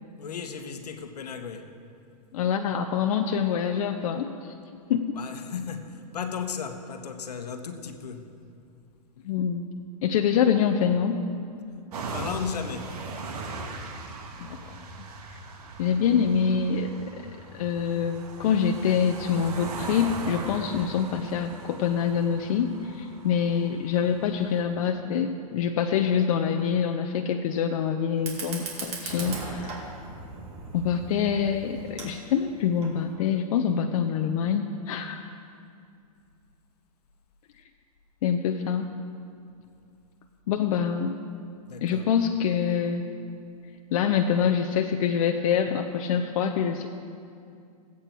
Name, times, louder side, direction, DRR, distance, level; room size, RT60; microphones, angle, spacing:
voice 1, 0.2-1.7 5.1-8.3 12.1-12.9 41.7-42.1, left 6 dB, 85° left, 7 dB, 1.2 m, -35 dB
voice 2, 2.3-4.5 4.9-5.0 9.2-9.7 10.0-11.2 14.4-14.6 15.8-16.9 17.5-29.9 30.7-35.2 38.2-38.9 40.5-41.1 41.8-43.0 43.9-46.9, left 7 dB, 60° left, 6 dB, 0.7 m, -25 dB
sound 1, 11.9-24.6, right 3 dB, 75° right, 1.5 m, -39 dB
Fire, 28.1-33.1, right 3 dB, 30° right, 2.2 m, -39 dB
16.0 x 8.5 x 4.5 m, 2.4 s
hypercardioid pair, 130°, 20 cm